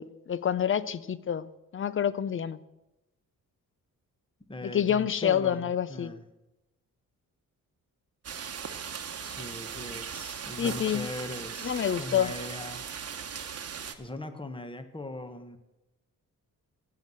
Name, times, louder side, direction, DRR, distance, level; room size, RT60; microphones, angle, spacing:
voice 1, 0.0-2.6 4.6-6.1 10.6-11.1 11.6-12.3, left 9 dB, 40° left, 17 dB, 0.6 m, -28 dB
voice 2, 4.5-6.2 9.2-12.8 14.0-15.6, left 2 dB, 15° left, 9 dB, 1.3 m, -40 dB
sound 1, 8.2-13.9, right 7 dB, 45° right, 1.1 m, -38 dB
15.5 x 5.8 x 7.7 m, 0.98 s
cardioid pair, 95°, 33 cm